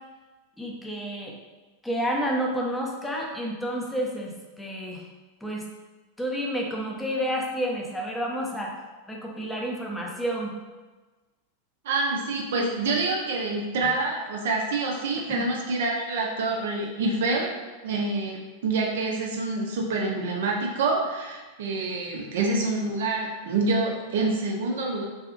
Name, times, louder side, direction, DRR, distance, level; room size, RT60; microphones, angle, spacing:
voice 1, 0.6-1.4 1.8-5.1 5.4-5.6 6.2-8.7 9.1-10.5 15.3-15.5, equal, 5° left, -1 dB, 0.4 m, -30 dB
voice 2, 11.8-17.5 17.8-25.1, right 3 dB, 60° right, -1 dB, 0.4 m, -27 dB
2.6 x 2.3 x 2.4 m, 1.2 s
figure-of-eight pair, 90°, 0 cm